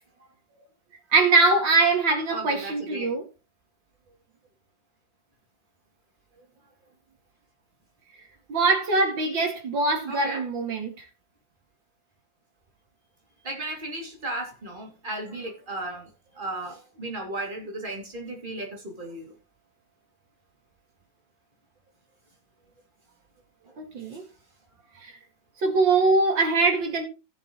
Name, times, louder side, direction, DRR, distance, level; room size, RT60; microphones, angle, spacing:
voice 1, 1.1-3.2 8.5-10.9 23.8-24.2 25.0-25.1 25.6-27.0, right 3 dB, 85° right, 3.0 m, -22 dB
voice 2, 2.3-3.1 10.1-10.4 13.4-16.1 16.3-19.3, right 2 dB, 25° right, 2.8 m, -35 dB
15.5 x 7.2 x 3.1 m
omnidirectional pair, 2.0 m